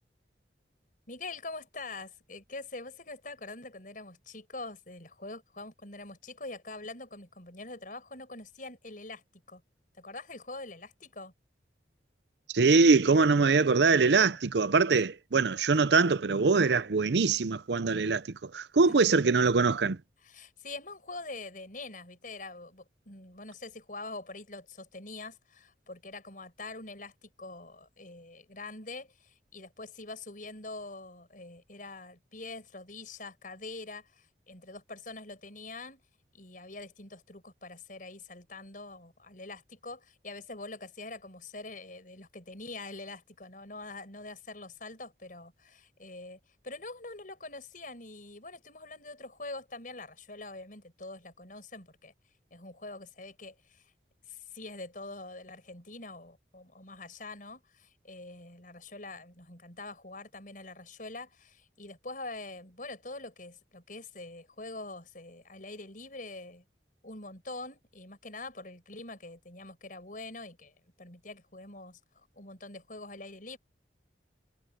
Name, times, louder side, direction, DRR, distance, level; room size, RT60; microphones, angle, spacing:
voice 1, 1.1-9.6 10.0-11.3 20.2-36.0 36.3-46.4 46.6-52.1 52.5-53.9 54.3-66.6 67.0-70.7 71.0-72.0 72.4-73.6, left 2 dB, 50° left, 6.2 m, -44 dB
voice 2, 12.5-20.0, right 4 dB, 75° right, 0.6 m, -23 dB
head